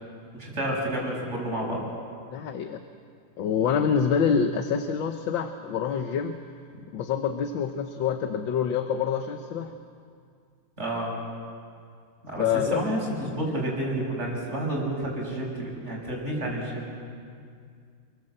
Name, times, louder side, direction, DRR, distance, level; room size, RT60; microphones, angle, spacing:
voice 1, 0.3-1.8 10.8-11.1 12.2-16.9, right 1 dB, 35° right, -2 dB, 6.3 m, -30 dB
voice 2, 2.3-2.8 3.4-6.4 6.9-9.7 12.4-12.8, left 7 dB, 75° left, 7 dB, 1.7 m, -26 dB
29.0 x 20.5 x 7.9 m, 2.2 s
omnidirectional pair, 2.1 m